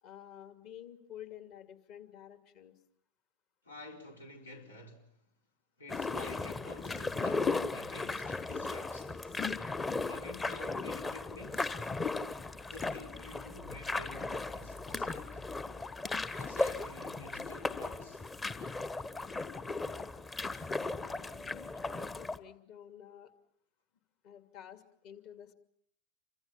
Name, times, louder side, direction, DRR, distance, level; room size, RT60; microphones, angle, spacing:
voice 1, 0.0-2.7 21.0-23.3 24.2-25.5, left 10 dB, 40° left, 2.7 m, -51 dB
voice 2, 3.6-5.2 5.8-9.4 10.1-11.7 12.7-15.5 16.4-18.2, left 2 dB, 75° left, 4.4 m, -50 dB
sound 1, 5.9-22.4, left 3 dB, 15° left, 1.2 m, -36 dB
28.5 x 25.0 x 5.8 m
figure-of-eight pair, 90°, 0 cm